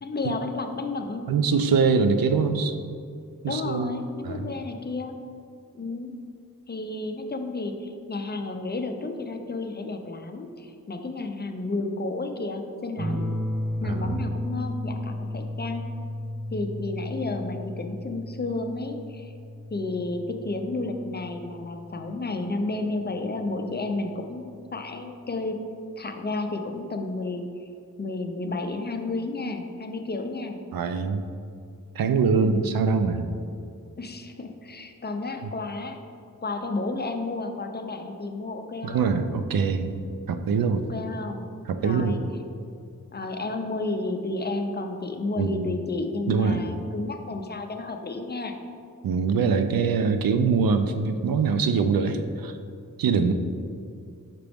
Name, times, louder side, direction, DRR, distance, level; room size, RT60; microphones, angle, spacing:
voice 1, 0.0-1.3 3.4-5.2 5.7-6.2 6.7-13.3 13.8-15.9 16.5-19.3 19.7-25.6 26.0-27.6 28.0-30.6 32.4-32.7 34.0-36.0 36.4-39.1 40.8-41.5 41.8-42.2 43.1-48.6, left 2 dB, 30° left, 5 dB, 0.4 m, -32 dB
voice 2, 1.3-2.8 3.4-3.9 4.2-4.5 13.8-14.3 30.7-31.2 31.9-33.3 38.8-39.9 40.3-40.8 41.7-42.2 45.4-45.7 46.3-46.6 49.0-52.6 53.0-53.3, right 5 dB, 85° right, 8 dB, 0.5 m, -23 dB
sound 1, 13.0-22.1 23.5-24.1, left 1 dB, 55° right, 1.1 m, -34 dB
5.9 x 5.0 x 3.4 m, 2.4 s
wide cardioid pair, 100°, 34 cm